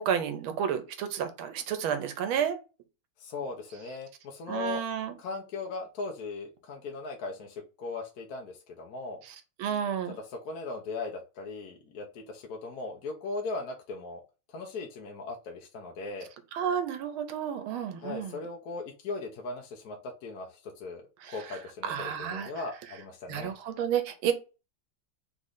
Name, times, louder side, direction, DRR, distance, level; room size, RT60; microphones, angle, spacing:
voice 1, 0.0-2.6 4.5-5.2 9.6-10.2 16.5-18.3 21.2-21.3 21.8-22.5 23.3-24.3, right 8 dB, 90° right, 9 dB, 1.6 m, -31 dB
voice 2, 3.2-4.8 5.2-9.2 10.2-14.2 14.5-16.3 18.0-23.5, left 3 dB, 60° left, 1 dB, 1.0 m, -38 dB
4.0 x 3.1 x 3.8 m, 0.31 s
omnidirectional pair, 2.2 m